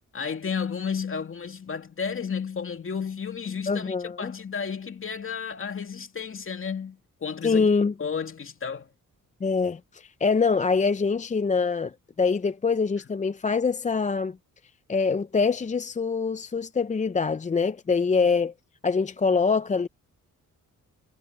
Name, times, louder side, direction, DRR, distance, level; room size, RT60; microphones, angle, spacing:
voice 1, 0.1-7.7 8.0-8.9, left 6 dB, 40° left, 2.4 m, -32 dB
voice 2, 3.7-4.3 7.4-7.9 9.4-14.4 14.9-18.5 18.8-19.9, left 5 dB, 25° left, 0.5 m, -24 dB
cardioid pair, 100°, 32 cm